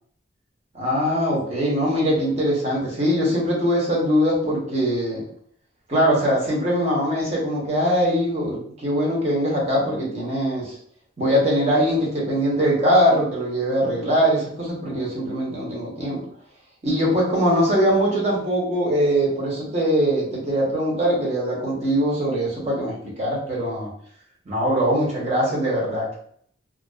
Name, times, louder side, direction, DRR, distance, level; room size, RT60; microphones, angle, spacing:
voice 1, 0.7-5.2 5.9-10.7 11.2-16.2 16.8-23.9 24.5-26.2, equal, 35° right, -4 dB, 0.8 m, -22 dB
2.4 x 2.3 x 2.2 m, 0.62 s
head